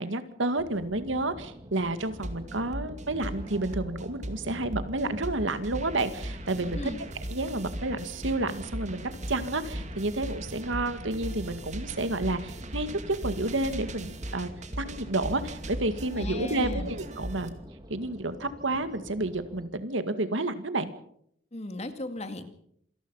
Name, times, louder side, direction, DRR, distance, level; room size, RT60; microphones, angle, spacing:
voice 1, 0.0-6.8 7.3-14.5 14.8-17.5 17.9-20.9, right 2 dB, 85° right, 10 dB, 2.0 m, -30 dB
sound 1, 0.6-19.7, equal, 20° right, 2.5 m, -48 dB
sound 2, 2.0-17.5, right 1 dB, 40° right, 2.4 m, -38 dB
voice 2, 16.1-16.9 21.5-22.4, left 2 dB, 35° left, 8 dB, 2.2 m, -36 dB
27.5 x 19.0 x 5.7 m, 0.69 s
head